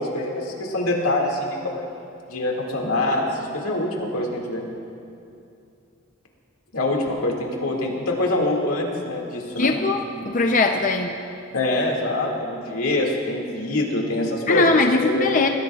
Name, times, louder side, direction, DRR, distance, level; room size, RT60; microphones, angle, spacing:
voice 1, 0.0-1.8 2.3-4.7 6.7-9.8 11.5-15.4, left 1 dB, 80° left, -1 dB, 2.1 m, -24 dB
voice 2, 9.6-11.2 14.5-15.5, left 3 dB, 35° left, 4 dB, 0.5 m, -20 dB
21.0 x 16.0 x 2.4 m, 2.6 s
head